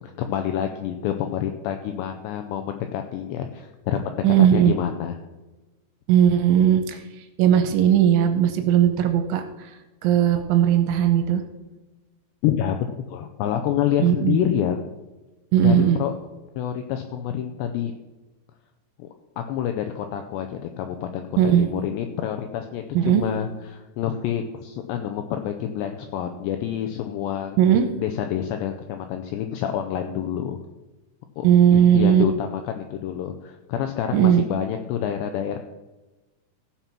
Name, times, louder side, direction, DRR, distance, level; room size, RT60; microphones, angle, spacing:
voice 1, 0.0-5.2 12.4-14.8 15.6-16.1 16.6-17.9 19.0-19.1 19.5-27.6 28.0-30.6 31.4-31.5 31.7-35.6, left 10 dB, 90° left, 6 dB, 2.5 m, -27 dB
voice 2, 4.2-4.7 6.1-7.0 7.4-9.7 10.0-11.4 14.0-14.4 15.5-16.0 21.4-21.7 22.9-23.2 27.6-27.9 31.4-32.3 34.1-34.4, right 9 dB, 85° right, 7 dB, 3.1 m, -18 dB
15.5 x 5.9 x 5.9 m, 1.1 s
omnidirectional pair, 5.7 m